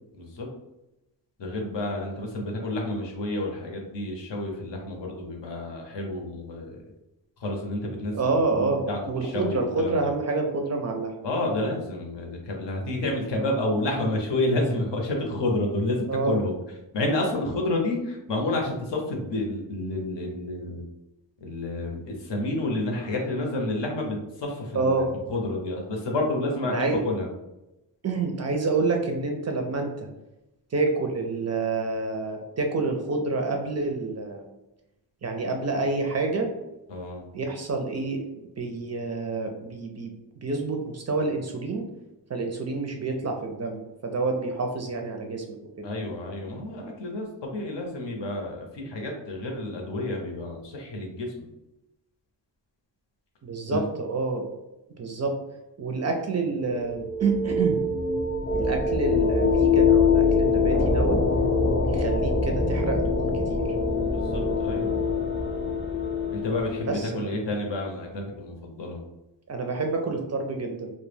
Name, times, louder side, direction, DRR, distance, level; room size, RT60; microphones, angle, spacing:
voice 1, 0.1-0.5 1.4-6.8 7.4-10.1 11.2-16.6 16.9-20.8 21.4-27.3 36.9-37.2 45.8-51.5 53.7-53.8 64.0-64.9 66.3-69.0, left 1 dB, 70° left, 1 dB, 0.7 m, -30 dB
voice 2, 8.1-11.1 16.1-16.4 24.7-25.1 26.7-27.0 28.0-30.1 30.7-34.5 35.2-36.5 37.3-41.9 42.3-45.4 45.8-45.9 53.4-54.5 55.0-55.4 55.8-57.8 58.5-61.2 61.8-63.7 66.8-67.3 69.5-70.9, right 3 dB, 40° right, 3 dB, 0.4 m, -28 dB
sound 1, 56.7-67.2, left 4 dB, 30° left, 0.4 m, -24 dB
2.2 x 2.1 x 3.2 m, 0.93 s
cardioid pair, 90°, 45 cm